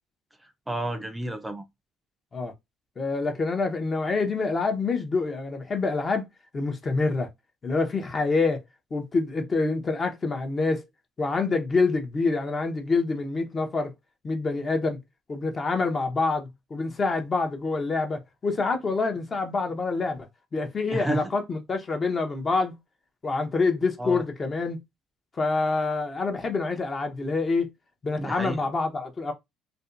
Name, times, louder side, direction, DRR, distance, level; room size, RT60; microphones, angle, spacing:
voice 1, 0.4-1.7 20.9-21.3 24.0-24.2 28.2-28.6, right 1 dB, 10° right, 0.4 m, -31 dB
voice 2, 3.0-6.3 6.5-7.3 7.6-8.6 8.9-10.8 11.2-13.9 14.2-15.0 15.3-20.3 20.5-22.7 23.2-24.8 25.4-27.7 28.0-29.3, left 3 dB, 35° left, 0.6 m, -26 dB
2.6 x 2.1 x 2.4 m
supercardioid pair, 70°, 0 cm